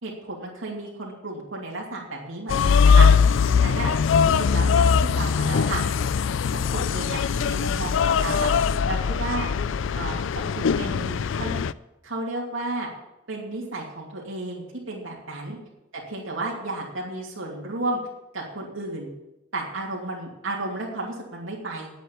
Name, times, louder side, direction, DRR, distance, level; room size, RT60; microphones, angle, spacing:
voice 1, 0.0-3.1 3.5-3.9 4.2-4.8 5.2-5.8 6.5-8.5 8.9-9.5 9.9-11.6 12.0-12.9 13.3-15.6 16.1-18.0 18.3-19.1 19.5-21.9, right 2 dB, 85° right, -3 dB, 2.7 m, -32 dB
sound 1, 2.5-11.7, left 6 dB, 75° left, 0.4 m, -21 dB
9.9 x 8.1 x 8.5 m, 0.93 s
head